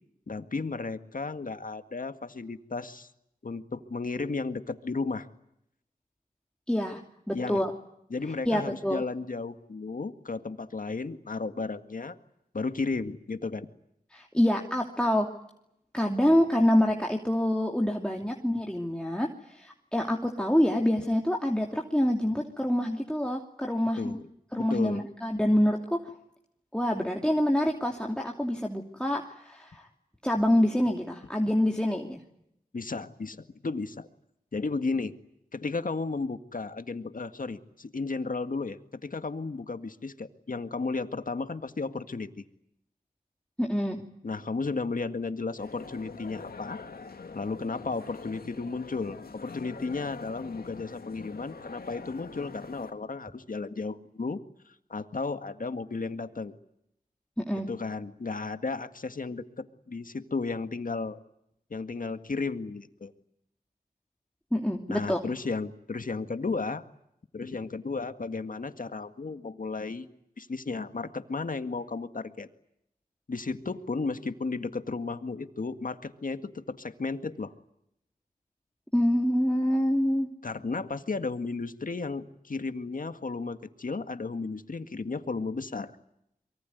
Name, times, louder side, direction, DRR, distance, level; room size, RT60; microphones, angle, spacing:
voice 1, 0.3-3.1 3.4-5.3 7.3-7.6 8.1-12.2 12.5-13.7 24.0-24.2 24.6-25.0 32.7-34.1 34.5-35.1 35.5-42.3 44.2-46.8 47.3-54.4 54.7-56.5 57.7-61.2 61.7-63.1 64.9-66.8 67.3-70.1 70.4-72.5 73.3-77.5 80.4-85.9, left 4 dB, 60° left, 9 dB, 1.9 m, -34 dB
voice 2, 6.7-7.0 7.3-7.7 8.4-9.0 14.1-15.3 15.9-24.2 24.5-26.0 26.7-29.9 30.2-32.2 43.6-44.0 57.4-57.7 64.5-65.2 78.9-80.3, left 1 dB, 5° left, 0 dB, 2.8 m, -26 dB
sound 1, 45.6-52.9, left 4 dB, 85° left, 2.3 m, -44 dB
25.0 x 23.0 x 9.4 m, 0.78 s
cardioid pair, 45°, 16 cm